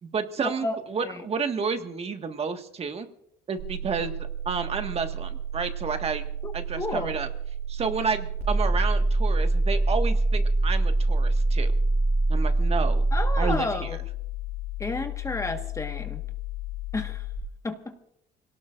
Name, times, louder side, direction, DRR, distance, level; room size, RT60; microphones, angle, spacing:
voice 1, 0.0-3.1 3.5-4.1 4.4-6.2 6.5-7.3 7.7-11.7 12.3-13.0 13.4-14.0, right 5 dB, 35° right, 6 dB, 1.7 m, -30 dB
sound 1, 3.6-17.4, right 2 dB, 70° right, 5.8 m, -26 dB
voice 2, 6.4-7.2 13.1-14.0 14.8-16.2 16.9-17.2 17.6-18.0, left 2 dB, 20° left, 5 dB, 1.5 m, -31 dB
26.0 x 18.0 x 2.6 m, 0.76 s
cardioid pair, 110°, 17 cm